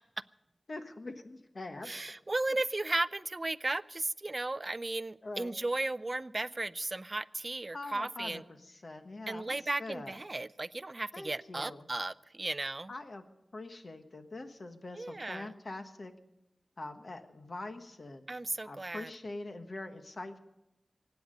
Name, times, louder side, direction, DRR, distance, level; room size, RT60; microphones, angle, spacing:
voice 1, 0.7-2.0 5.2-5.6 7.7-10.2 11.1-11.8 12.9-13.2 13.5-16.1 16.8-18.2 18.6-20.4, left 2 dB, 50° left, 7 dB, 1.3 m, -44 dB
voice 2, 1.9-8.4 9.3-12.9 15.0-15.5 18.3-19.1, right 2 dB, 35° right, 17 dB, 0.4 m, -35 dB
24.5 x 9.5 x 5.3 m, 0.91 s
wide cardioid pair, 85°, 0 cm